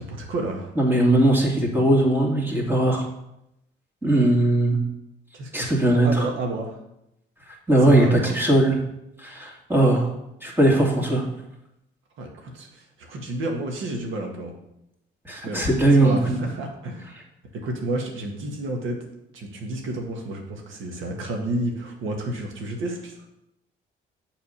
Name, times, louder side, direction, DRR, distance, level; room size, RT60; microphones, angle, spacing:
voice 1, 0.0-0.7 5.3-6.8 7.9-8.3 12.2-14.5 15.4-15.7 16.0-17.1 17.5-19.0 19.3-23.2, right 1 dB, 80° right, 2 dB, 1.7 m, -31 dB
voice 2, 0.8-3.1 4.0-4.8 5.5-6.1 7.7-8.8 9.2-10.1 10.4-11.2 15.2-16.4, right 1 dB, 10° right, -2 dB, 2.3 m, -19 dB
7.2 x 4.1 x 6.5 m, 0.83 s
cardioid pair, 90°, 20 cm